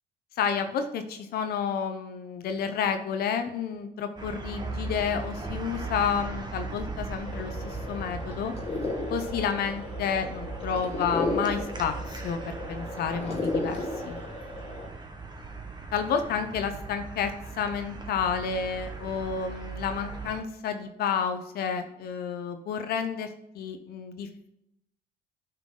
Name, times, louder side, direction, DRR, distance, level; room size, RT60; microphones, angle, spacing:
voice 1, 0.4-8.5 9.1-13.8 14.0-14.2 15.9-17.3 17.6-24.5, left 6 dB, 70° left, 8 dB, 0.8 m, -30 dB
sound 1, 4.2-20.4, right 3 dB, 25° right, 1.2 m, -38 dB
sound 2, 7.2-14.9, left 2 dB, 35° left, 1.7 m, -34 dB
9.9 x 5.7 x 3.8 m, 0.80 s
cardioid pair, 110°, 17 cm